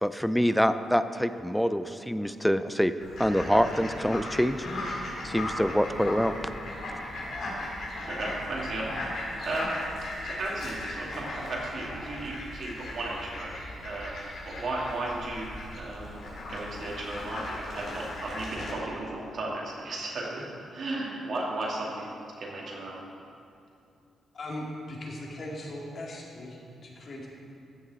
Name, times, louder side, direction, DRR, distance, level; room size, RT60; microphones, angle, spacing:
voice 1, 0.0-2.9 3.2-4.6 4.9-6.3, equal, ahead, 11 dB, 0.4 m, -25 dB
Fowl, 3.0-18.7, left 1 dB, 75° left, 2.8 m, -37 dB
voice 2, 8.0-16.2 16.5-20.4 20.7-23.0, right 2 dB, 60° right, -3 dB, 2.3 m, -35 dB
voice 3, 24.3-27.3, left 1 dB, 55° left, -2 dB, 2.2 m, -39 dB
14.0 x 7.1 x 4.2 m, 2.6 s
cardioid pair, 75°, 0 cm